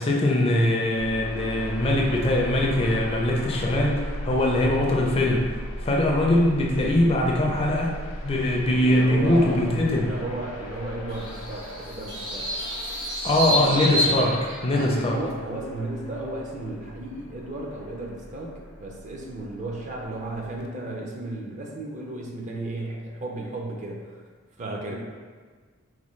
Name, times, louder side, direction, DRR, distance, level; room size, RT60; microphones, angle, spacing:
voice 1, 0.0-5.5 5.8-8.0 8.2-10.1 13.2-15.2, left 1 dB, 25° left, -1 dB, 0.4 m, -22 dB
sound 1, 1.0-20.7, equal, 85° left, 0.5 m, -37 dB
voice 2, 8.8-12.5 14.7-24.2 24.6-24.9, right 2 dB, 35° right, -1 dB, 0.4 m, -34 dB
sound 2, 11.1-15.1, equal, 65° right, 1.3 m, -29 dB
4.1 x 2.2 x 3.0 m, 1.5 s
head